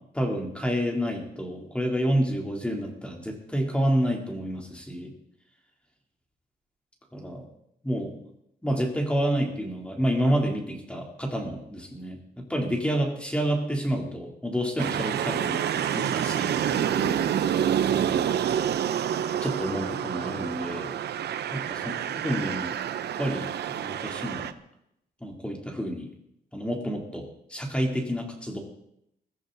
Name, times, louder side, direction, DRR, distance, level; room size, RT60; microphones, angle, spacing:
voice 1, 0.1-5.1 7.1-7.4 7.8-8.1 8.6-17.3 17.9-18.3 19.4-20.9 21.5-22.8 23.2-24.5 25.2-26.1 26.5-28.6, equal, 5° left, 0 dB, 3.5 m, -29 dB
sound 1, 14.8-24.5, right 9 dB, 85° right, 0.8 m, -28 dB
22.0 x 14.0 x 4.1 m, 0.78 s
cardioid pair, 110°, 17 cm